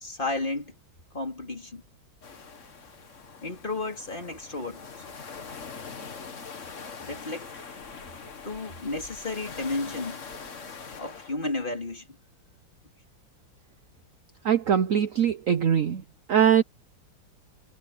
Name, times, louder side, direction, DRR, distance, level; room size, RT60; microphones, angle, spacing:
voice 1, 0.0-0.7 1.1-1.8 3.4-4.8 7.0-7.5 8.4-10.2 11.0-12.1, left 2 dB, 25° left, 3.1 m, -32 dB
sound 1, 2.2-11.3, left 5 dB, 40° left, 1.7 m, -43 dB
voice 2, 14.4-16.0 16.3-16.6, right 9 dB, 70° right, 0.7 m, -22 dB
omnidirectional pair, 2.3 m